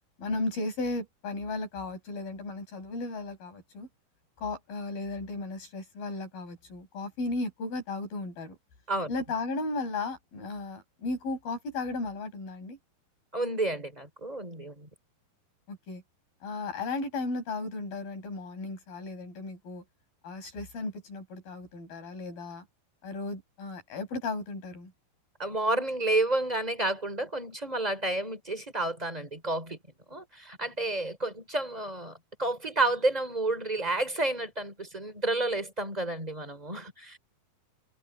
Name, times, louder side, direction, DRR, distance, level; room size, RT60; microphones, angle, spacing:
voice 1, 0.2-3.9 4.4-8.5 9.1-12.8 15.7-16.0 16.4-19.8 20.2-22.6 23.0-24.9, left 3 dB, 60° left, 8.2 m, -35 dB
voice 2, 13.3-14.9 25.4-29.8 30.1-37.2, right 2 dB, 10° right, 3.5 m, -30 dB
omnidirectional pair, 4.7 m